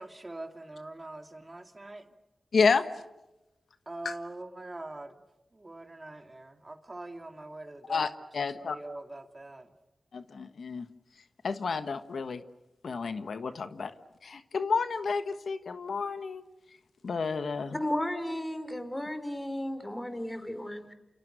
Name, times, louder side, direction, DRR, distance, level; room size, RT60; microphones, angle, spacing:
voice 1, 0.0-2.1 3.9-5.2 5.5-8.1 8.4-9.8, right 2 dB, 30° right, 6 dB, 2.5 m, -43 dB
voice 2, 2.5-2.8 4.0-4.1 7.9-8.1 8.3-8.8 10.1-10.9 11.4-12.4 12.8-13.9 14.2-16.4 17.0-17.8, left 5 dB, 75° left, 10 dB, 1.4 m, -30 dB
voice 3, 17.7-20.9, left 1 dB, 15° left, 10 dB, 3.8 m, -34 dB
29.5 x 27.5 x 6.5 m, 0.99 s
cardioid pair, 65°, 0 cm